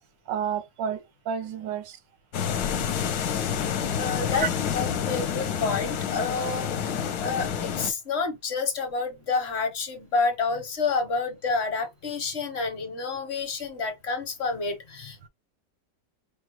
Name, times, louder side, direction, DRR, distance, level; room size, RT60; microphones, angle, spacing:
voice 1, 0.3-2.0 3.3-3.4 4.4-4.5, right 8 dB, 85° right, 1.4 m, -30 dB
sound 1, 2.3-7.9, left 7 dB, 65° left, 1.1 m, -28 dB
voice 2, 3.9-15.3, left 4 dB, 45° left, 1.1 m, -29 dB
5.0 x 2.3 x 3.0 m
omnidirectional pair, 1.9 m